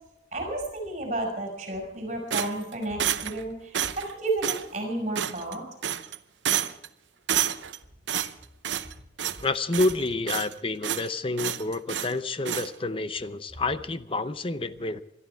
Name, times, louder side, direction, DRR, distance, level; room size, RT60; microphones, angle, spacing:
voice 1, 0.3-5.6, right 2 dB, 35° right, 0 dB, 5.1 m, -32 dB
sound 1, 2.3-3.4 3.7-4.1 4.4-4.6 5.1-5.5 5.8-6.2 6.4-6.9 7.3-7.8 8.1-8.9 9.2-9.4 9.7-10.5 10.8-11.1 11.4-12.1 12.4-12.7, right 10 dB, 80° right, 0.8 m, -29 dB
voice 2, 9.4-15.0, left 2 dB, 30° left, 12 dB, 0.7 m, -29 dB
22.0 x 13.0 x 4.6 m, 0.85 s
head